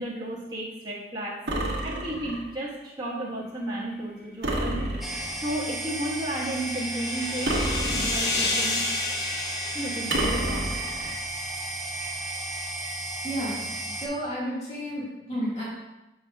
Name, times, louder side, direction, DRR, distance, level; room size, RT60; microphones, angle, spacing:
voice 1, 0.0-1.4 1.8-5.1 5.4-7.5 7.9-8.9 9.7-10.7, right 1 dB, 25° right, -8 dB, 1.2 m, -33 dB
sound 1, 1.5-2.5 4.4-5.5 7.4-8.6 10.1-11.2, right 1 dB, 80° right, 1.1 m, -29 dB
sound 2, 5.0-14.1, right 2 dB, ahead, 0.5 m, -34 dB
sound 3, 5.6-11.2, left 2 dB, 75° left, 0.9 m, -32 dB
voice 2, 13.2-13.6 13.8-15.6, equal, 40° left, -7 dB, 1.8 m, -31 dB
6.7 x 6.1 x 2.3 m, 1.0 s
head